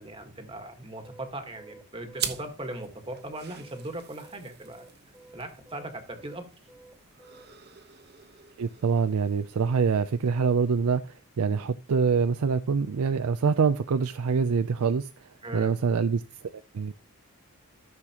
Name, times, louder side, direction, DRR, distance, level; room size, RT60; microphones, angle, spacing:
voice 1, 0.0-4.8 5.3-6.4 15.4-15.8, right 1 dB, 25° right, 1.4 m, -39 dB
sound 1, 1.0-4.4 4.6-7.5, right 2 dB, 5° right, 1.7 m, -52 dB
sound 2, 2.1-11.1, right 9 dB, 45° right, 1.0 m, -43 dB
voice 2, 8.6-15.1 15.5-16.2 16.5-16.9, right 5 dB, 75° right, 0.4 m, -25 dB
13.5 x 6.6 x 2.9 m
head